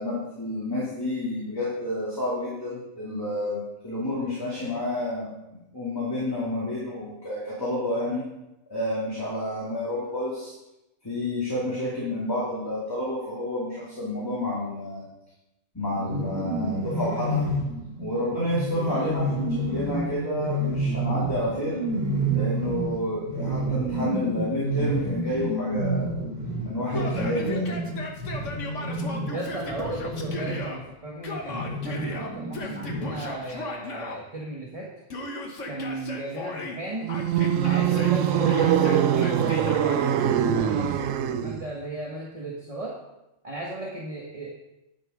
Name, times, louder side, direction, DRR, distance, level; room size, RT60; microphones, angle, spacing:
voice 1, 0.0-5.3 5.7-8.3 8.7-10.5 11.0-15.1 15.7-17.4 18.0-21.8 22.3-26.1 26.6-27.6, left 1 dB, 15° left, -8 dB, 2.6 m, -30 dB
sound 1, 16.0-30.7 31.4-33.3, right 1 dB, 70° right, 3.0 m, -29 dB
voice 2, 18.8-19.1 29.3-34.9 35.6-37.1 37.6-42.9 43.4-44.5, right 2 dB, 30° right, -2 dB, 1.4 m, -36 dB
Yell, 26.9-30.8 31.2-34.2 35.1-36.8 37.1-40.0, left 2 dB, 70° left, 1.6 m, -36 dB
sound 2, 37.0-41.7, right 9 dB, 90° right, 1.0 m, -23 dB
10.5 x 6.7 x 5.1 m, 0.93 s
omnidirectional pair, 1.3 m